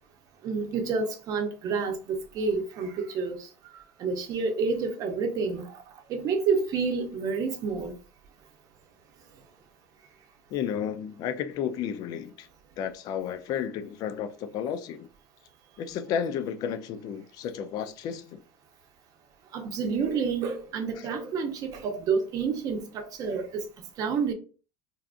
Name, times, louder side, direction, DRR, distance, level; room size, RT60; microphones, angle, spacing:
voice 1, 0.4-3.4 4.0-5.7 6.1-7.9 19.5-23.6 24.0-24.3, right 5 dB, 45° right, 0.7 m, -29 dB
voice 2, 10.5-12.5 12.8-15.1 15.8-18.4 21.0-21.1, left 8 dB, 55° left, 0.4 m, -32 dB
2.6 x 2.4 x 2.4 m
supercardioid pair, 100°, 8 cm